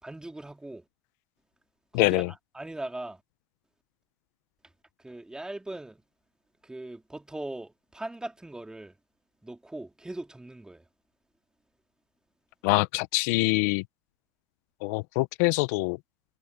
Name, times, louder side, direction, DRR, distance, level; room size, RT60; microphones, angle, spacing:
voice 1, 0.0-0.8 1.9-3.2 5.0-6.0 6.6-9.0 9.4-10.8, right 2 dB, 5° right, 3.4 m, -40 dB
voice 2, 1.9-2.3 12.6-13.8 14.8-16.0, left 26 dB, 65° left, 1.1 m, -24 dB
hypercardioid pair, 90°, 10 cm